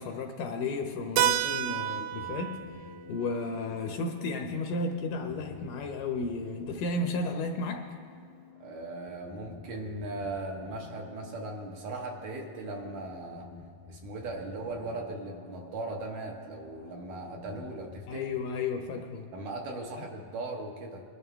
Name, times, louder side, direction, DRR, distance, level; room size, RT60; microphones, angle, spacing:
voice 1, 0.0-2.6 3.1-7.8 18.1-19.3, left 3 dB, 75° left, 3 dB, 2.2 m, -33 dB
Keyboard (musical), 1.2-5.6, right 11 dB, 80° right, 2.2 m, -33 dB
sound 1, 2.1-18.1, left 5 dB, 90° left, 3.1 m, -51 dB
voice 2, 8.6-13.5 13.9-18.2 19.3-21.0, right 2 dB, 65° right, 0 dB, 2.5 m, -38 dB
22.0 x 11.0 x 3.5 m, 2.4 s
omnidirectional pair, 4.3 m